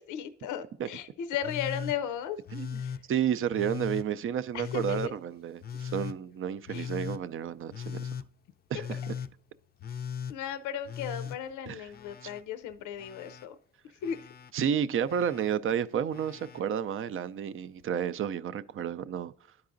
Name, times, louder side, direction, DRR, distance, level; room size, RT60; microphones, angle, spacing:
voice 1, 0.0-2.4 2.8-3.0 4.5-5.2 6.7-6.9 10.3-13.6 14.0-14.3, left 9 dB, 85° left, 0.5 m, -36 dB
Telephone, 1.4-2.0 2.5-3.0 3.5-4.1 4.6-5.1 5.6-6.2 6.7-7.2 7.7-8.3 8.7-9.3 9.8-10.4 10.8-12.4 12.7-13.5 14.0-14.5 15.1-15.6 16.1-16.6 17.8-17.9, left 7 dB, 35° left, 0.4 m, -38 dB
voice 2, 3.1-8.1 8.7-9.2 11.7-11.9 12.2-12.3 14.5-19.3, right 8 dB, 45° right, 0.4 m, -31 dB
11.5 x 4.7 x 2.5 m
cardioid pair, 90°, 30 cm